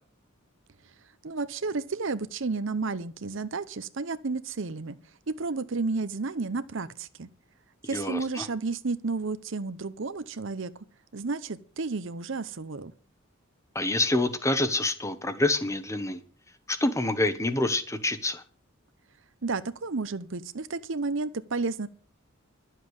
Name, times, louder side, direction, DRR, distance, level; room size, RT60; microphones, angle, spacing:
voice 1, 1.2-5.0 5.3-7.3 7.9-10.7 11.1-12.9 19.4-21.9, right 3 dB, 65° right, 0.8 m, -32 dB
voice 2, 7.9-8.5 13.7-16.2 16.7-18.4, left 2 dB, 15° left, 1.1 m, -27 dB
11.5 x 7.5 x 8.1 m
head